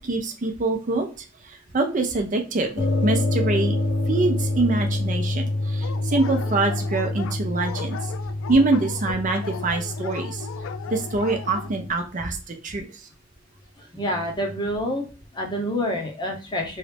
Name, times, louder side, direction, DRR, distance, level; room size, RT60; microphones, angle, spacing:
voice 1, 0.0-3.8 4.1-8.1 8.5-10.5 10.9-13.1, right 3 dB, 40° right, 4 dB, 0.6 m, -25 dB
sound 1, 2.8-11.9, left 2 dB, 55° left, 0.9 m, -27 dB
Dog, 5.8-11.7, left 7 dB, 80° left, 0.3 m, -37 dB
voice 2, 13.8-15.1 15.3-16.8, equal, 25° left, 1 dB, 0.8 m, -27 dB
3.1 x 2.5 x 3.3 m, 0.35 s
head